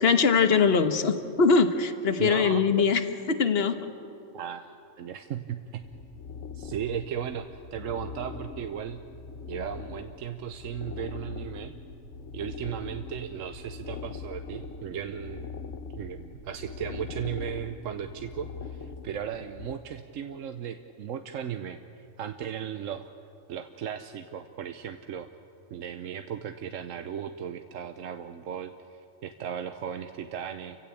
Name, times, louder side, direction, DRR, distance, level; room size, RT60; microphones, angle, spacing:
voice 1, 0.0-3.0 3.3-3.8, left 5 dB, 50° left, 9 dB, 1.4 m, -22 dB
voice 2, 2.2-2.8 4.3-5.8 6.5-9.0 9.5-11.7 12.3-15.6 15.9-23.1 23.5-25.3 25.7-28.7 29.2-30.8, right 8 dB, 75° right, 8 dB, 1.2 m, -36 dB
sound 1, 5.8-19.8, left 5 dB, 70° left, 1.2 m, -42 dB
29.5 x 16.0 x 8.5 m, 2.6 s
omnidirectional pair, 1.4 m